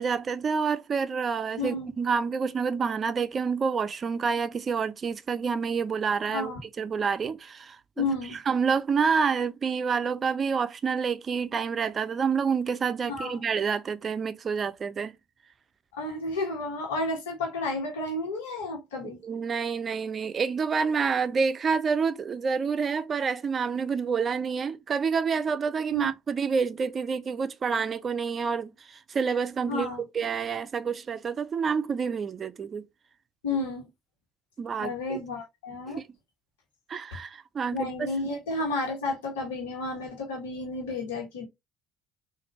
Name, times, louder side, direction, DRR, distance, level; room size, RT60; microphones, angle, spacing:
voice 1, 0.0-6.5 6.8-8.1 8.5-15.1 19.2-29.9 30.1-32.8 34.6-35.2 36.9-38.1, right 5 dB, 40° right, 0.5 m, -28 dB
voice 2, 1.6-1.9 6.3-6.6 8.0-8.4 13.1-13.4 15.9-19.2 25.9-26.1 29.7-30.0 33.4-33.9 34.8-36.0 37.7-41.5, left 2 dB, 75° left, 1.3 m, -32 dB
3.8 x 2.6 x 3.0 m
figure-of-eight pair, 55°, 0 cm